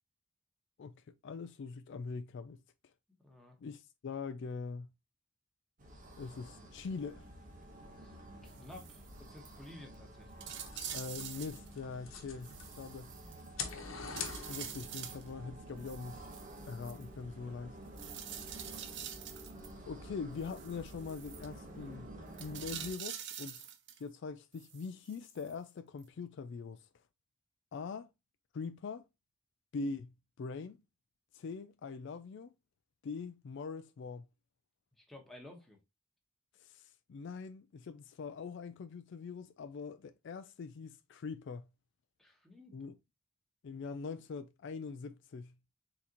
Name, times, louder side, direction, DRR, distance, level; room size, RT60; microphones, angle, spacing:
voice 1, 1.2-2.6 3.6-4.9 6.2-7.3 10.9-12.5 12.8-13.1 14.5-16.3 16.7-17.8 19.9-22.1 22.4-23.7 24.0-26.9 27.7-28.1 28.5-29.1 29.7-30.8 31.3-32.5 33.0-34.2 36.6-41.7 42.7-42.9 43.6-45.5, left 4 dB, 60° left, 0.3 m, -43 dB
voice 2, 3.2-3.6 8.0-8.2 8.4-10.5 17.4-17.6 34.9-35.8 42.2-42.7, left 1 dB, ahead, 1.1 m, -53 dB
sound 1, 5.8-22.9, right 1 dB, 40° right, 1.0 m, -51 dB
sound 2, 8.5-9.1 9.5-9.6 9.9-10.0 10.4-11.7 12.4-13.7 14.2-15.3 15.8-17.1 18.0-19.7 20.4-21.5 22.3-24.0 24.5-25.5 26.0-26.1, right 10 dB, 60° right, 0.6 m, -46 dB
sound 3, 10.6-12.9 13.3-15.0, left 6 dB, 75° left, 1.0 m, -44 dB
4.2 x 3.8 x 2.8 m
head